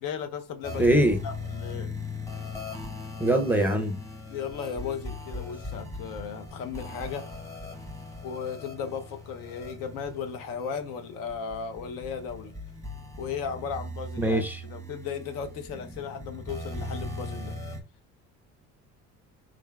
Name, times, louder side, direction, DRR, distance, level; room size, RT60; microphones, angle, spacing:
voice 1, 0.0-1.9 4.3-7.3 8.2-12.5 13.2-17.6, left 6 dB, 80° left, 0.7 m, -36 dB
sound 1, 0.6-17.8, left 2 dB, 10° left, 0.8 m, -39 dB
voice 2, 0.8-1.2 3.2-4.0 14.2-14.6, right 1 dB, 5° right, 0.4 m, -22 dB
3.7 x 3.3 x 2.3 m
cardioid pair, 120°, 33 cm